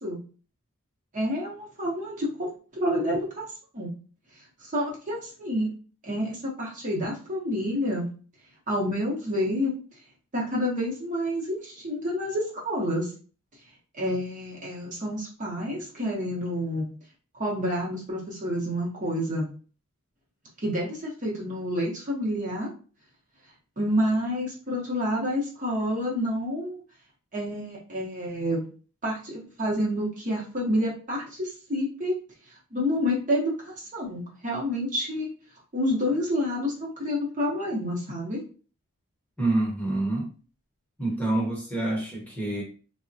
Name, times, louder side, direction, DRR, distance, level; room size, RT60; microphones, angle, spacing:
voice 1, 1.1-3.4 3.7-3.9 4.6-5.7 6.0-8.1 8.7-9.7 10.3-13.1 13.9-16.9 17.4-19.5 20.6-22.7 23.8-26.8 27.3-28.6 29.0-32.1 32.7-35.3 35.7-38.4, equal, 35° right, -3 dB, 0.7 m, -28 dB
voice 2, 39.4-40.3 41.0-42.6, right 2 dB, 5° left, -4 dB, 0.8 m, -27 dB
3.3 x 2.0 x 2.6 m, 0.38 s
head